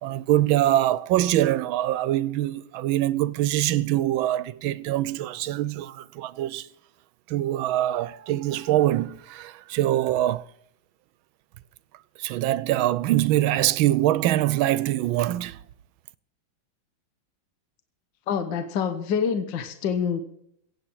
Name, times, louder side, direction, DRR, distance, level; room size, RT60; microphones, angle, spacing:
voice 1, 0.0-6.7 7.3-10.4 12.2-15.6, right 14 dB, 85° right, 1.5 m, -24 dB
voice 2, 18.3-20.2, left 7 dB, 70° left, 1.7 m, -26 dB
15.5 x 9.1 x 6.2 m
omnidirectional pair, 2.2 m